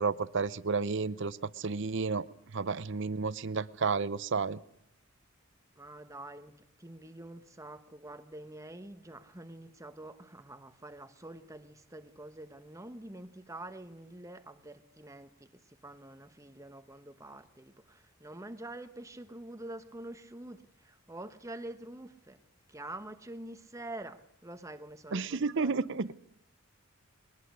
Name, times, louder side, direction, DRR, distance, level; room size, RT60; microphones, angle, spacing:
voice 1, 0.0-4.6 25.1-26.1, right 4 dB, 60° right, 0.7 m, -32 dB
voice 2, 5.8-22.4 22.7-25.7, right 1 dB, 15° right, 1.2 m, -46 dB
21.0 x 20.0 x 6.4 m
head